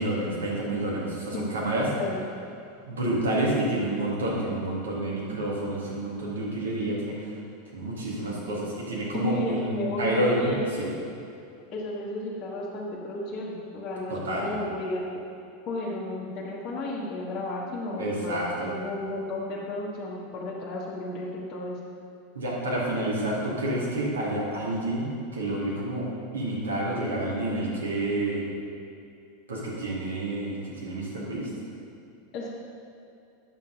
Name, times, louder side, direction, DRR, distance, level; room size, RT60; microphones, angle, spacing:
voice 1, 0.0-1.9 2.8-7.3 7.7-10.5 10.8-10.9 14.1-14.5 18.0-18.7 22.3-28.4 29.5-31.5, right 1 dB, 75° right, -5 dB, 2.0 m, -29 dB
voice 2, 9.1-10.9 11.7-15.2 15.7-21.8 32.3-32.5, left 2 dB, 35° left, -7 dB, 1.4 m, -33 dB
8.9 x 7.1 x 4.0 m, 2.6 s
figure-of-eight pair, 85°, 0 cm